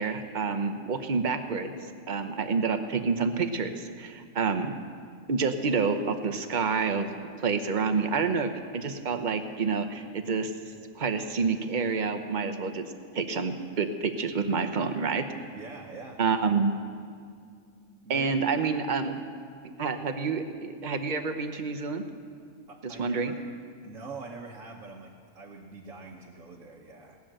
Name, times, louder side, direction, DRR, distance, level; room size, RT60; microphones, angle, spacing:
voice 1, 0.0-1.7 2.1-4.7 5.3-10.5 10.9-12.8 13.1-15.3 16.2-16.7 18.1-19.2 19.8-22.0 22.8-23.3, right 5 dB, 40° right, 8 dB, 0.9 m, -28 dB
voice 2, 15.5-16.2 18.0-18.3 22.7-23.2 23.8-27.2, right 3 dB, 70° right, -2 dB, 1.5 m, -44 dB
18.5 x 7.1 x 8.8 m, 2.2 s
omnidirectional pair, 1.4 m